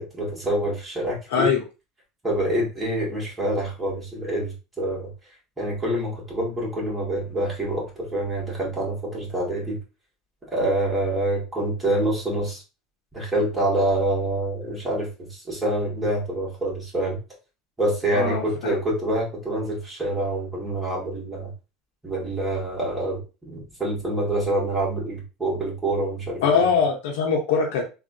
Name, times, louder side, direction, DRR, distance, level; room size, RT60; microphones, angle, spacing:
voice 1, 0.0-1.5 2.2-5.1 5.6-9.8 10.5-12.6 13.1-17.2 17.8-21.5 22.0-26.6, right 1 dB, 10° right, -5 dB, 1.8 m, -26 dB
voice 2, 1.3-1.6 18.1-18.8 26.4-27.8, left 5 dB, 80° left, 1 dB, 0.7 m, -22 dB
3.3 x 2.4 x 2.7 m, 0.30 s
supercardioid pair, 115°, 0 cm